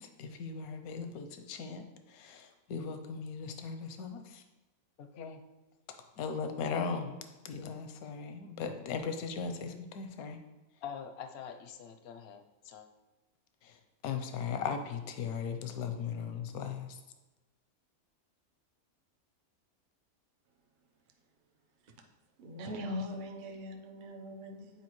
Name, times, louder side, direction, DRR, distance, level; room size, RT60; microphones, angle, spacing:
voice 1, 0.0-4.4 5.9-10.4 13.6-17.0, left 6 dB, 85° left, 7 dB, 1.1 m, -38 dB
voice 2, 5.0-5.4 10.8-12.9, left 7 dB, 60° left, 6 dB, 0.7 m, -45 dB
voice 3, 22.4-24.8, left 1 dB, 50° right, 3 dB, 0.7 m, -41 dB
8.6 x 4.5 x 3.1 m, 1.1 s
omnidirectional pair, 1.5 m